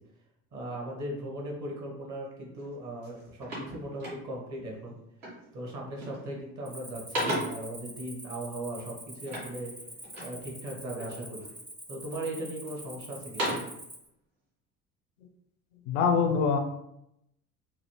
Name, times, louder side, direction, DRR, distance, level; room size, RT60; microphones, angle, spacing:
voice 1, 0.5-5.0 5.5-9.7 10.2-11.5 11.9-13.5, right 1 dB, 40° right, -1 dB, 1.1 m, -38 dB
sound 1, 2.6-2.7 3.0-4.6 5.2-5.5 5.9-6.4 6.7-7.7 9.2-10.4 10.9-11.6 12.1-12.8 13.1-13.8, equal, 65° right, 1.4 m, -36 dB
Cricket, 6.7-14.1, right 1 dB, 5° right, 0.4 m, -46 dB
voice 2, 15.9-16.6, left 5 dB, 60° left, 6 dB, 0.5 m, -24 dB
3.2 x 2.3 x 3.1 m, 0.80 s
figure-of-eight pair, 55°, 44 cm